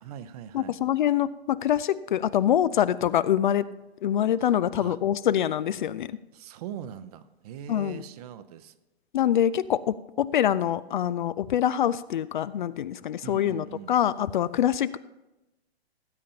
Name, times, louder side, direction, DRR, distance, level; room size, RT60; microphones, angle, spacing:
voice 1, 0.0-0.8 4.8-5.0 6.3-8.7 13.2-13.9, right 9 dB, 35° right, 12 dB, 0.7 m, -41 dB
voice 2, 0.5-3.7 4.0-6.1 7.7-8.0 9.1-15.0, left 10 dB, 50° left, 17 dB, 0.4 m, -25 dB
18.0 x 8.7 x 2.9 m, 0.99 s
figure-of-eight pair, 125°, 32 cm